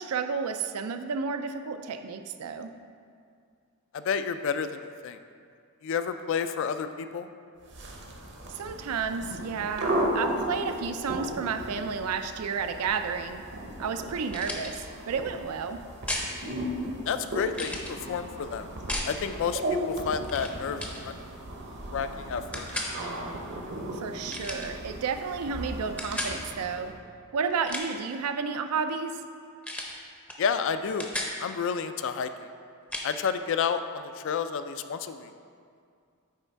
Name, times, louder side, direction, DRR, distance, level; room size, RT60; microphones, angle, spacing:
voice 1, 0.0-2.7 8.5-13.4 13.8-15.8 23.9-26.9 27.3-29.2, right 5 dB, 90° right, 9 dB, 0.4 m, -31 dB
voice 2, 3.9-5.2 5.8-7.3 17.1-18.7 19.0-21.1 21.9-22.7 30.4-31.1 31.4-32.5 33.0-35.3, left 6 dB, 60° left, 10 dB, 0.3 m, -30 dB
sound 1, 7.6-27.0, right 1 dB, 55° right, 0.8 m, -36 dB
sound 2, 14.3-14.7 16.1-16.3 17.5-17.9 18.9-19.1 20.2-20.5 20.8-21.0 22.5-22.9 24.3-24.7 26.0-26.4 27.5-28.0 29.6-29.9 30.3-30.4 30.7-31.3 32.9-33.1, left 1 dB, 5° left, 0.5 m, -34 dB
8.2 x 3.3 x 4.5 m, 2.3 s
head